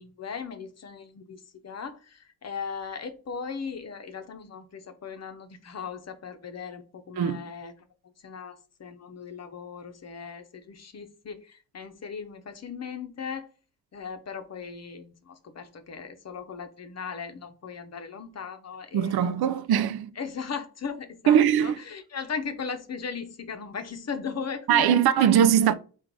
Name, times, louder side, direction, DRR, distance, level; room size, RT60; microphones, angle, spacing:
voice 1, 0.0-7.7 8.2-13.5 13.9-19.5 20.2-25.3, left 6 dB, 40° left, 0.7 m, -38 dB
voice 2, 18.9-20.1 21.3-21.8 24.7-25.7, right 9 dB, 70° right, 0.5 m, -21 dB
3.8 x 2.5 x 4.6 m
cardioid pair, 75°, 39 cm